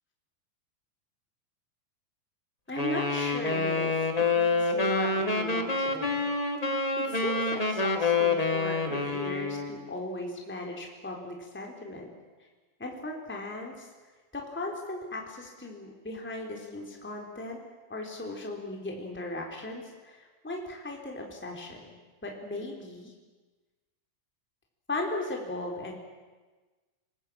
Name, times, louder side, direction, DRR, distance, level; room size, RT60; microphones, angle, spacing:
voice 1, 2.7-3.9 4.3-6.3 7.0-12.1 12.8-13.9 14.3-17.6 17.9-22.0 22.2-23.1 24.9-25.9, left 2 dB, 5° left, 0 dB, 3.5 m, -37 dB
Wind instrument woodwind instrument, 2.8-9.7, left 3 dB, 20° left, 1.1 m, -27 dB
28.0 x 19.0 x 8.7 m, 1.3 s
omnidirectional pair, 3.9 m